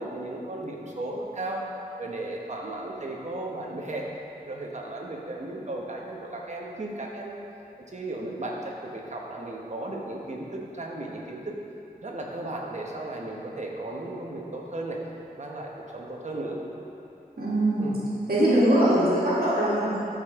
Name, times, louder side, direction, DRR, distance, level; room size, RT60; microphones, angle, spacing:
voice 1, 0.0-1.7 2.0-4.1 4.5-7.4 7.9-11.6 12.0-15.0 15.4-16.6 17.8-18.0, right 2 dB, 50° right, -1 dB, 1.1 m, -35 dB
voice 2, 17.4-17.9 18.3-20.0, right 1 dB, 70° right, -9 dB, 2.0 m, -22 dB
12.5 x 5.2 x 3.7 m, 2.9 s
wide cardioid pair, 85°, 16 cm